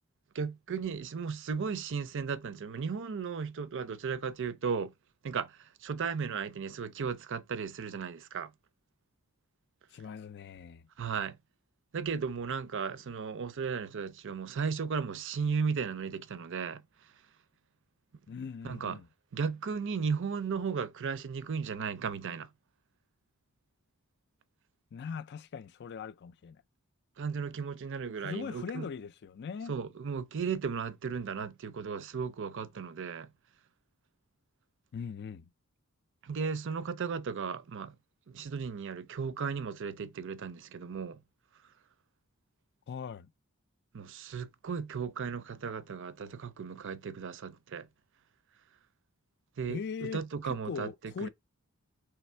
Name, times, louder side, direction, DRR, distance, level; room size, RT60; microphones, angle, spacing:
voice 1, 0.3-4.9 5.2-8.5 11.0-11.4 11.9-16.8 18.6-19.0 19.3-22.5 27.2-28.9 29.7-33.3 36.2-38.0 38.3-41.2 43.9-47.9 49.6-51.3, right 6 dB, 60° right, 0.5 m, -35 dB
voice 2, 9.9-10.8 18.3-19.1 24.9-26.6 28.2-29.7 34.9-35.5 42.9-43.3 49.7-50.2 50.6-51.3, left 6 dB, 50° left, 0.4 m, -40 dB
3.4 x 3.1 x 4.4 m
head